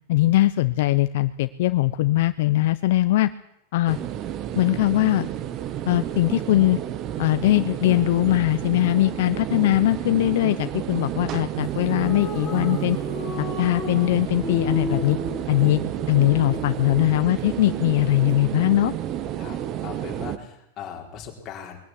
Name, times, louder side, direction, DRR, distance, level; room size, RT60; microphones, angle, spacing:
voice 1, 0.1-3.3 3.7-4.0 4.6-5.3 5.9-6.8 7.2-13.0 13.4-15.2 15.5-15.8 16.1-18.9, left 16 dB, 60° left, 12 dB, 0.7 m, -21 dB
sound 1, 3.9-20.4, right 11 dB, 30° right, 0.9 m, -31 dB
sound 2, 11.6-16.9, left 1 dB, ahead, 5.1 m, -34 dB
voice 2, 19.4-21.8, left 7 dB, 25° left, 0 dB, 4.1 m, -39 dB
21.5 x 12.5 x 9.8 m, 0.82 s
supercardioid pair, 165°, 0 cm